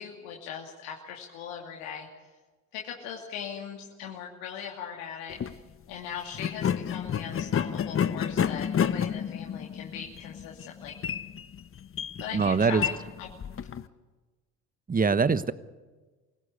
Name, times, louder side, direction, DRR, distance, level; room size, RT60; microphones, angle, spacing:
voice 1, 0.0-2.1 2.7-5.6 5.9-11.0 12.2-13.3, left 8 dB, 75° left, 0 dB, 2.7 m, -39 dB
sound 1, 5.3-5.6 6.3-13.9, left 8 dB, 35° left, 1.1 m, -30 dB
voice 2, 12.3-12.8 14.9-15.5, right 5 dB, 20° right, 15 dB, 1.2 m, -23 dB
24.5 x 16.5 x 8.3 m, 1.3 s
hypercardioid pair, 70°, 40 cm